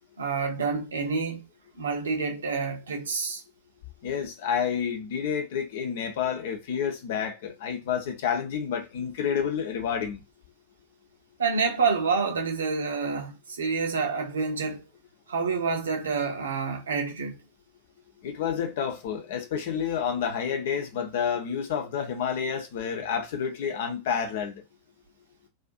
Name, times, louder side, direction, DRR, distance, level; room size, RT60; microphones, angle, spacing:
voice 1, 0.2-1.4 1.8-3.4 11.4-14.8 15.3-17.4, right 5 dB, 70° right, 0.8 m, -28 dB
voice 2, 4.0-10.2 18.2-24.6, left 7 dB, 55° left, 0.7 m, -29 dB
2.5 x 2.5 x 2.5 m
figure-of-eight pair, 90°, 0 cm